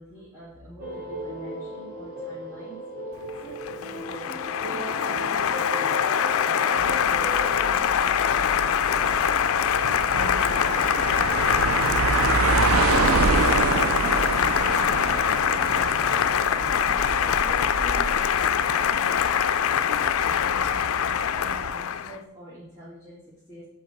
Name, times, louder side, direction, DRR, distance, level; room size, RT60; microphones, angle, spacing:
voice 1, 0.0-2.8 3.2-9.8 10.1-19.2 19.5-20.9 21.4-23.6, right 1 dB, 15° right, -11 dB, 2.2 m, -45 dB
sound 1, 0.8-7.7, right 1 dB, 40° right, 1.5 m, -36 dB
Applause, 3.3-22.2, left 8 dB, 70° left, 0.4 m, -24 dB
sound 2, 6.7-21.7, right 4 dB, 70° right, 0.5 m, -28 dB
6.6 x 4.6 x 6.6 m, 0.87 s
head